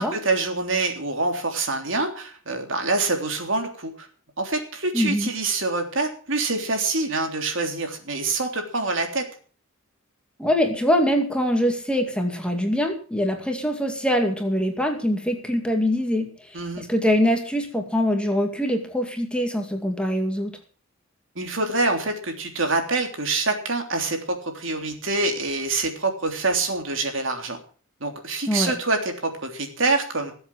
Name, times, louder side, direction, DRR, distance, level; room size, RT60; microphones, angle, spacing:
voice 1, 0.0-4.1 4.4-9.2 16.5-16.9 21.3-27.6 28.0-30.3, right 3 dB, 65° right, 4 dB, 3.3 m, -26 dB
voice 2, 4.9-5.3 10.4-20.5 28.5-28.7, equal, 5° left, 3 dB, 2.3 m, -23 dB
19.5 x 8.0 x 6.1 m, 0.41 s
head